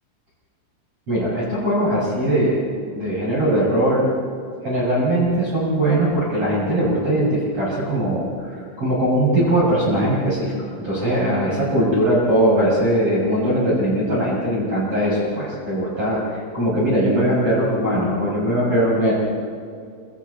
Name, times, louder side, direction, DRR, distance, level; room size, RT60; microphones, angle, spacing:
voice 1, 1.1-4.1 4.6-10.5 10.8-19.1, right 1 dB, 30° right, -7 dB, 7.5 m, -20 dB
29.0 x 27.0 x 4.4 m, 2.3 s
omnidirectional pair, 5.2 m